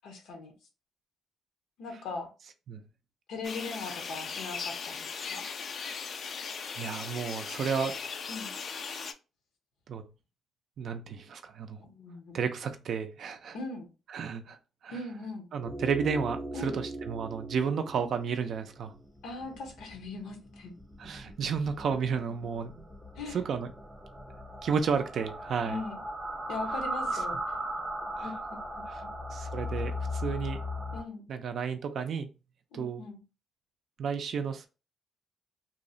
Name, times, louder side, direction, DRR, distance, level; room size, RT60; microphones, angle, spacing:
voice 1, 0.0-0.5 1.8-2.3 3.3-5.5 8.3-8.5 11.8-12.3 13.5-13.9 14.9-15.5 16.5-16.8 19.2-20.7 23.2-23.4 25.6-26.0 26.5-27.4 28.2-29.1 30.9-31.3 32.7-33.2, left 3 dB, 80° left, 0.7 m, -40 dB
sound 1, 3.4-9.1, left 6 dB, 55° left, 0.3 m, -38 dB
voice 2, 6.8-8.0 8.9-9.0 9.9-10.0 10.8-11.8 12.3-13.6 14.1-14.6 14.8-15.0 15.5-18.9 21.0-22.9 23.3-23.7 24.6-25.8 28.2-28.3 29.3-30.6 31.3-32.3 32.7-33.0 34.0-34.7, right 6 dB, 60° right, 0.3 m, -32 dB
sound 2, 15.6-31.0, equal, 5° right, 0.6 m, -38 dB
2.7 x 2.0 x 2.5 m
cardioid pair, 90°, 0 cm